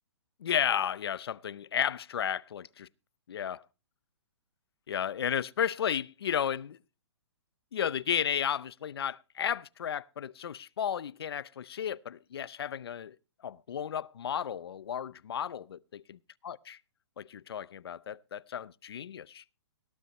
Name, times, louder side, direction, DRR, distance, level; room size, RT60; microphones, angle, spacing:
voice 1, 0.4-2.9 3.3-3.6 4.9-6.8 7.7-13.2 13.4-16.2 16.4-16.6 17.2-19.4, left 9 dB, 60° left, 0.5 m, -33 dB
18.0 x 12.0 x 3.0 m
hypercardioid pair, 175°, 15 cm